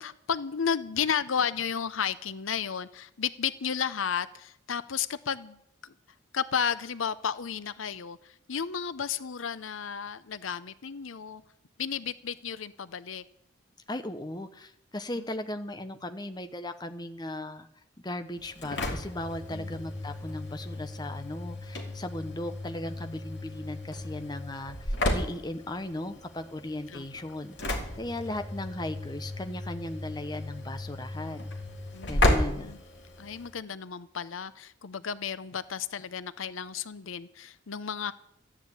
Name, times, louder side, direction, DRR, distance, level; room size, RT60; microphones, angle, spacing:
voice 1, 0.0-5.9 6.3-11.4 11.8-13.2 15.2-15.3 19.5-19.8 26.9-27.0 31.9-32.8 33.2-38.1, left 7 dB, 90° left, 15 dB, 0.7 m, -33 dB
voice 2, 13.9-17.7 18.0-31.5 32.1-32.7, left 1 dB, 20° left, 8 dB, 0.9 m, -37 dB
Engine / Slam, 18.4-33.5, left 1 dB, 60° left, 2.8 m, -33 dB
13.5 x 9.8 x 8.4 m, 0.74 s
head